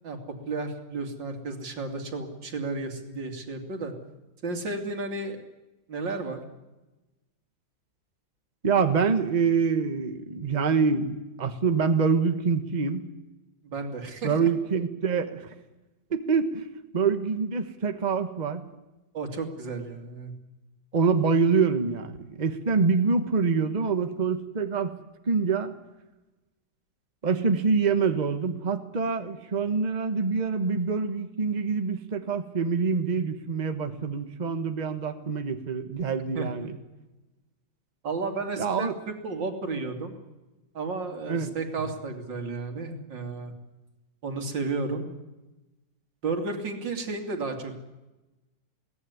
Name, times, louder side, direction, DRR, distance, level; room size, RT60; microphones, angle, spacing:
voice 1, 0.5-3.9 4.4-5.4 5.9-6.4 13.6-14.5 19.1-20.3 36.3-36.7 38.0-38.9 39.2-40.1 40.7-43.5 44.2-45.1 46.2-47.8, right 3 dB, 85° right, 4 dB, 3.3 m, -32 dB
voice 2, 8.6-13.0 14.2-15.4 16.1-16.7 16.9-18.6 20.9-25.0 25.3-25.7 27.2-36.7 38.6-38.9 41.3-41.9, right 5 dB, 25° right, 8 dB, 1.3 m, -25 dB
22.5 x 17.5 x 9.6 m, 1.1 s
omnidirectional pair, 1.9 m